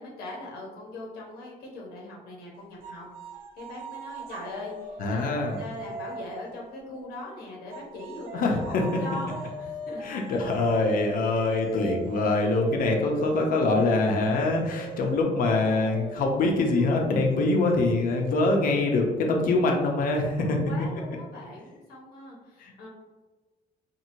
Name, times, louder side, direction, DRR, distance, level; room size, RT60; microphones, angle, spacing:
voice 1, 0.0-3.1 3.6-9.3 9.6-10.4 20.4-22.9, left 2 dB, 90° left, -3 dB, 0.9 m, -41 dB
sound 1, 2.8-7.2 7.7-19.1, right 2 dB, 75° right, 0.4 m, -41 dB
voice 2, 5.0-5.6 8.3-8.8 10.0-20.6 22.6-22.7, left 2 dB, 65° left, 1 dB, 0.6 m, -24 dB
2.9 x 2.6 x 2.6 m, 1.3 s
cardioid pair, 110°, 15 cm